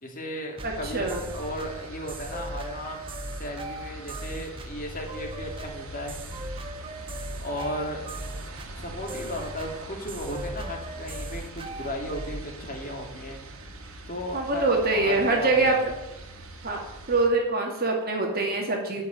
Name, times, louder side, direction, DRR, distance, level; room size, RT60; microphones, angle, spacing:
voice 1, 0.0-3.0 3.4-6.1 7.4-8.1 8.8-13.4 14.1-15.8, equal, 40° left, 1 dB, 2.7 m, -35 dB
sound 1, 0.6-12.5, right 1 dB, 25° right, 1.0 m, -38 dB
voice 2, 0.6-1.2 14.3-15.9 16.6-16.8 17.1-19.0, right 2 dB, 45° right, 0 dB, 2.5 m, -24 dB
sound 2, 0.6-17.3, right 1 dB, 70° right, 2.2 m, -43 dB
12.5 x 5.8 x 9.4 m, 1.0 s
head